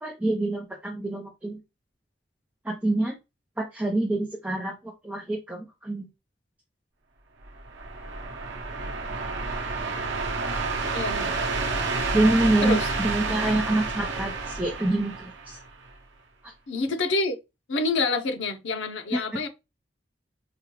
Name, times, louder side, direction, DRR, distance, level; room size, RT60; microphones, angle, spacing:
voice 1, 0.0-1.6 2.6-3.1 3.6-6.1 12.1-15.6 19.1-19.2, right 1 dB, 10° right, 0.6 m, -26 dB
sound 1, 7.4-15.9, right 3 dB, 85° right, 0.7 m, -30 dB
voice 2, 10.9-11.4 12.6-12.9 16.7-17.4 17.7-19.5, left 3 dB, 90° left, 0.7 m, -27 dB
4.9 x 2.2 x 2.9 m
head